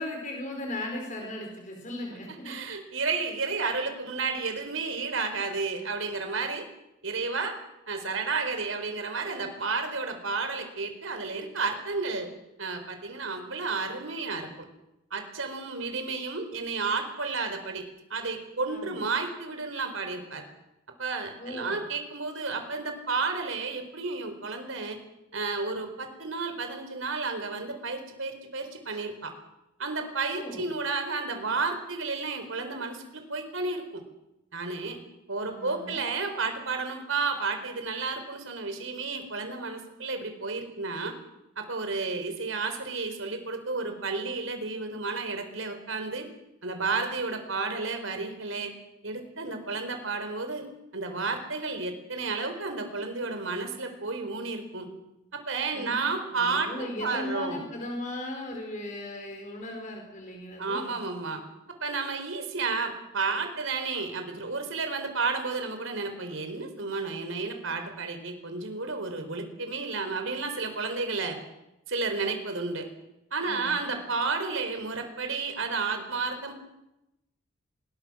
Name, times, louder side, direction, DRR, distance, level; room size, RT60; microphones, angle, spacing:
voice 1, 0.0-2.5 18.7-19.0 21.4-21.8 30.3-30.7 35.4-36.0 55.7-61.0 73.4-74.0, left 1 dB, 40° left, 2 dB, 4.6 m, -37 dB
voice 2, 2.4-6.7 7.0-7.5 7.9-12.3 12.6-14.7 15.1-17.8 18.1-20.4 21.0-25.0 25.3-29.3 29.8-34.0 34.5-35.0 35.3-41.1 41.6-46.2 46.6-48.7 49.0-50.7 50.9-54.9 55.3-57.6 60.6-61.4 61.8-71.4 71.9-72.9 73.3-76.5, right 4 dB, 75° right, 6 dB, 4.3 m, -32 dB
26.0 x 21.0 x 6.3 m, 0.92 s
head